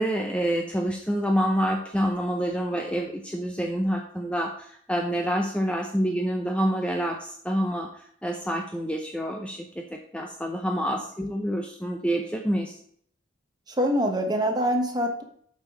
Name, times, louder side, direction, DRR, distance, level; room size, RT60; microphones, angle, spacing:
voice 1, 0.0-7.9 8.2-12.8, equal, 5° left, 3 dB, 0.6 m, -27 dB
voice 2, 13.7-15.2, equal, 20° right, 4 dB, 1.1 m, -24 dB
8.2 x 5.4 x 4.7 m, 0.62 s
head